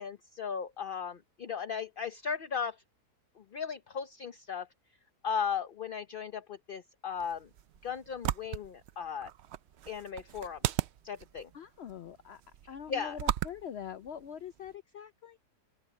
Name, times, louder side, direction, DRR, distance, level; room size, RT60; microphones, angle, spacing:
voice 1, 0.0-2.8 3.4-4.7 5.2-7.5 7.8-9.3 9.9-10.6 11.0-11.5 12.9-13.2, left 6 dB, 45° left, 0.8 m, -36 dB
sound 1, 7.1-14.7, right 12 dB, 75° right, 0.6 m, -38 dB
voice 2, 11.5-12.4 12.7-15.4, left 8 dB, 75° left, 0.6 m, -43 dB
open air
omnidirectional pair, 1.7 m